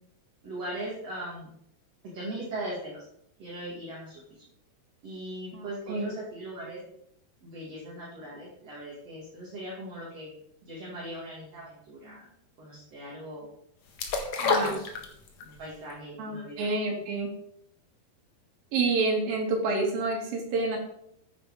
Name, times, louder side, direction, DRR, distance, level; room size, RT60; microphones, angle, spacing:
voice 1, 0.4-1.5 2.1-3.0 3.4-4.2 5.0-6.8 7.4-10.3 10.6-12.3 12.6-13.5 14.4-15.0 15.4-16.8, right 1 dB, 45° right, -5 dB, 3.3 m, -39 dB
voice 2, 5.5-6.1 14.4-14.8 16.2-17.3 18.7-20.8, right 3 dB, 70° right, 0 dB, 4.2 m, -28 dB
sound 1, 14.0-15.5 15.9-16.0, left 4 dB, 55° left, 2.4 m, -27 dB
9.6 x 9.3 x 5.1 m, 0.73 s
omnidirectional pair, 4.4 m